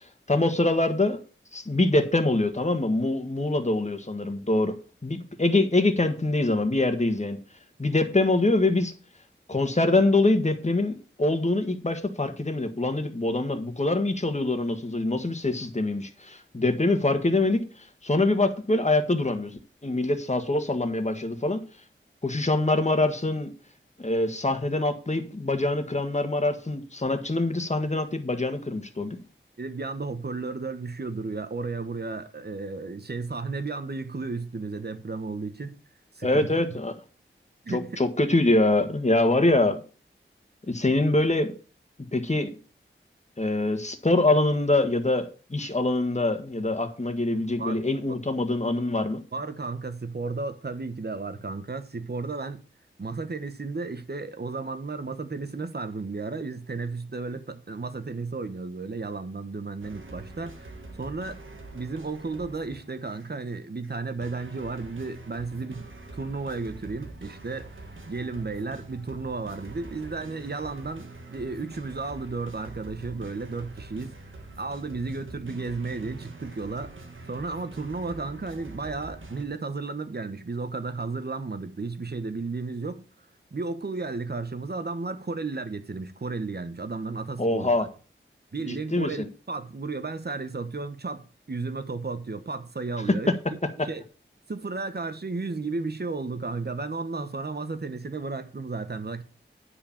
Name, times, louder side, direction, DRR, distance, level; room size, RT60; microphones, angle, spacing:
voice 1, 0.3-1.2 1.5-4.7 5.0-7.4 7.8-8.9 9.5-21.6 22.2-23.5 24.0-29.2 36.2-36.9 37.7-39.8 40.7-41.5 42.1-42.5 43.4-49.2 87.4-87.9 88.7-89.3 93.8-93.9, left 2 dB, 35° left, 1.6 m, -24 dB
voice 2, 29.6-35.8 36.1-36.6 37.6-38.0 47.6-47.8 49.3-52.6 53.0-61.4 61.7-67.7 68.1-74.2 74.6-77.0 77.3-83.0 83.5-87.9 88.5-93.3 93.8-94.0 94.5-99.2, right 3 dB, 50° right, 1.2 m, -33 dB
sound 1, 59.8-63.4 63.8-79.5, right 2 dB, 70° right, 1.7 m, -45 dB
10.0 x 4.9 x 7.2 m
wide cardioid pair, 55°, 21 cm